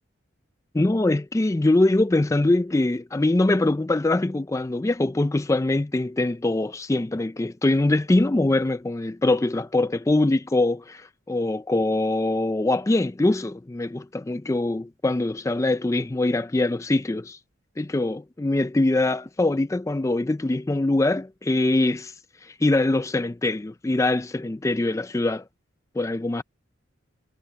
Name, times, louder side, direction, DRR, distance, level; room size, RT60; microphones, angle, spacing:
voice 1, 0.7-17.4 17.8-22.1 22.4-25.4 26.0-26.4, left 2 dB, 15° left, 0.3 m, -23 dB
head